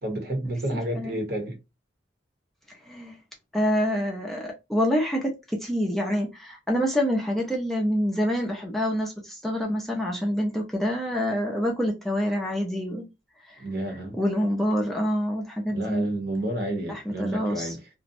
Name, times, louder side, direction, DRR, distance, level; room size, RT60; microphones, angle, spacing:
voice 1, 0.0-1.6 13.6-14.2 15.7-17.9, right 1 dB, 55° right, 0.8 m, -30 dB
voice 2, 0.7-1.2 2.7-3.2 3.5-13.1 13.5-13.6 14.2-16.0 16.9-17.7, equal, ahead, 0.4 m, -27 dB
2.5 x 2.0 x 2.5 m
head